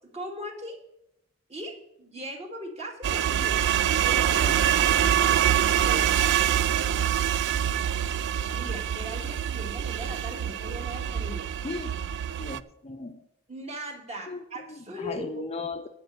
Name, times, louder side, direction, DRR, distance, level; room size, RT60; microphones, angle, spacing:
voice 1, 0.1-0.8 1.5-3.6 4.0-6.9 8.5-11.5 13.5-15.5, equal, 30° right, 2 dB, 1.8 m, -39 dB
sound 1, 3.0-12.6, right 10 dB, 55° right, 0.3 m, -25 dB
voice 2, 12.4-13.2 14.3-14.4 15.0-15.9, left 3 dB, 30° left, 7 dB, 0.6 m, -36 dB
11.0 x 5.2 x 8.2 m, 0.81 s
head